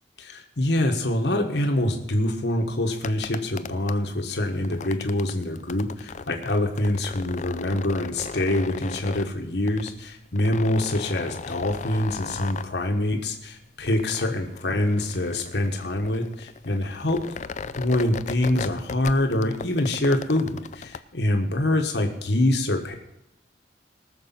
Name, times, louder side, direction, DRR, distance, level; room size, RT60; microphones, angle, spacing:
voice 1, 0.2-17.2 17.8-23.0, left 1 dB, 70° left, 3 dB, 1.4 m, -25 dB
sound 1, 2.9-21.0, left 5 dB, 40° left, 0.4 m, -38 dB
19.0 x 6.7 x 5.9 m, 0.87 s
head